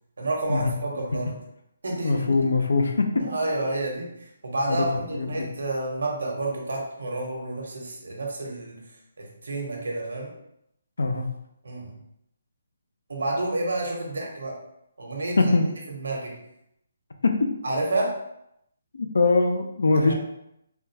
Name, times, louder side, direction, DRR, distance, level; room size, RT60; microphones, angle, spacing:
voice 1, 0.2-1.4 1.8-2.4 3.2-10.3 11.6-12.0 13.1-14.6 15.0-15.5 15.9-16.4 17.6-18.2 19.9-20.1, right 2 dB, 80° right, 0 dB, 1.0 m, -30 dB
voice 2, 1.9-3.2 4.7-5.5 11.0-11.3 15.4-15.8 17.2-17.5 19.0-20.1, left 3 dB, 85° left, 5 dB, 0.5 m, -22 dB
3.6 x 2.3 x 2.7 m, 0.79 s
hypercardioid pair, 170°, 0 cm